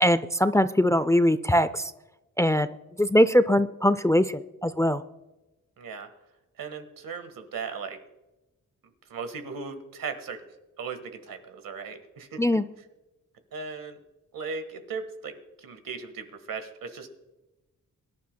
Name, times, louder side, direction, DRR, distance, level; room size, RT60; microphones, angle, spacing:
voice 1, 0.0-1.8 2.4-2.7 3.0-5.0 12.4-12.6, equal, 10° left, 12 dB, 0.3 m, -21 dB
voice 2, 5.8-6.1 6.6-8.0 9.1-10.5 10.8-12.6 13.5-14.0 14.3-17.1, right 5 dB, 85° right, 8 dB, 1.6 m, -37 dB
23.0 x 11.0 x 2.2 m, 1.0 s
wide cardioid pair, 115°, 33 cm